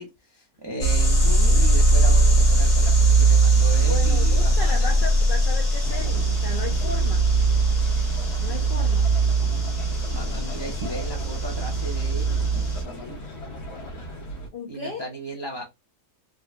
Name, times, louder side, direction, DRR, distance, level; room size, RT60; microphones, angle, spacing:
voice 1, 0.0-5.1 10.1-12.2 12.5-13.2 14.7-15.6, right 1 dB, 30° right, 0.4 m, -36 dB
sound 1, 0.8-12.8, right 2 dB, 45° left, 1.3 m, -20 dB
voice 2, 3.8-7.3 8.4-9.1 14.5-15.1, left 4 dB, 60° left, 0.5 m, -35 dB
sound 2, 5.8-14.5, left 1 dB, 85° left, 1.5 m, -38 dB
3.6 x 2.2 x 2.5 m
omnidirectional pair, 1.6 m